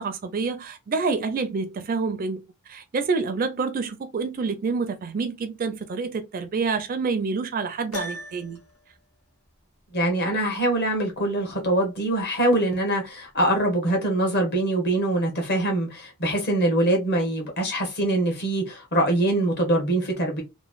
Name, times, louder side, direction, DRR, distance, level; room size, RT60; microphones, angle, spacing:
voice 1, 0.0-2.4 2.7-8.6, right 4 dB, 40° right, 0.4 m, -27 dB
Piano, 7.9-8.8, left 2 dB, 85° left, 0.9 m, -35 dB
voice 2, 9.9-20.4, right 1 dB, 50° left, 1.1 m, -23 dB
3.0 x 2.1 x 2.4 m
head